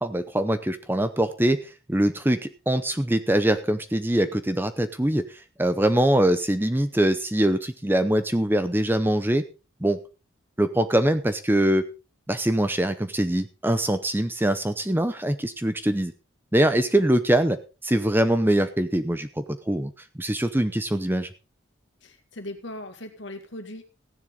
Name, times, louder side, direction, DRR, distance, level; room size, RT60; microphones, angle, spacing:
voice 1, 0.0-9.4 9.8-10.0 10.6-11.9 12.3-16.1 16.5-19.9 20.2-21.3, right 1 dB, 10° right, 10 dB, 0.7 m, -23 dB
voice 2, 22.0-23.8, left 1 dB, 60° left, 6 dB, 2.2 m, -39 dB
15.5 x 10.5 x 3.8 m, 0.31 s
head